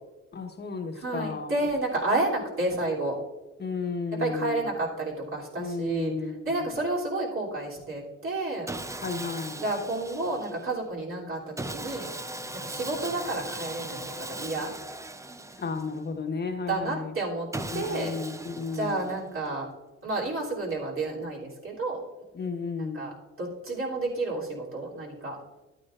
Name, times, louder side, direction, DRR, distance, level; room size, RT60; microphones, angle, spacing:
voice 1, 0.3-1.6 3.6-4.7 5.6-6.6 9.0-9.6 15.6-17.1 17.7-19.1 22.3-23.1, left 4 dB, 35° left, 4 dB, 1.3 m, -33 dB
voice 2, 0.9-3.1 4.2-6.1 6.4-8.7 9.6-12.1 12.6-14.7 16.7-17.5 17.7-18.1 18.7-19.7 20.0-22.0 22.8-23.1 23.4-25.4, right 2 dB, 45° right, -4 dB, 3.1 m, -30 dB
Sawing, 8.7-10.7 11.6-16.1 17.5-19.3, right 1 dB, 10° right, 0.5 m, -38 dB
13.5 x 8.9 x 2.5 m, 1.2 s
cardioid pair, 90°, 30 cm